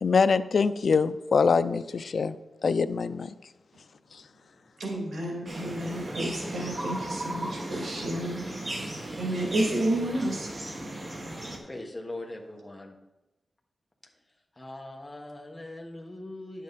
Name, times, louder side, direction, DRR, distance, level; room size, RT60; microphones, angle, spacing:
voice 1, 0.0-2.4 2.6-3.3, left 5 dB, 65° left, 0.4 m, -24 dB
voice 2, 4.8-8.9 9.2-10.5, right 1 dB, 90° right, 2.4 m, -31 dB
sound 1, 5.5-11.6, right 1 dB, 35° right, 1.6 m, -36 dB
voice 3, 11.6-13.0 14.5-16.6, left 1 dB, 15° left, 1.3 m, -41 dB
10.5 x 7.4 x 4.1 m
wide cardioid pair, 135°, 0 cm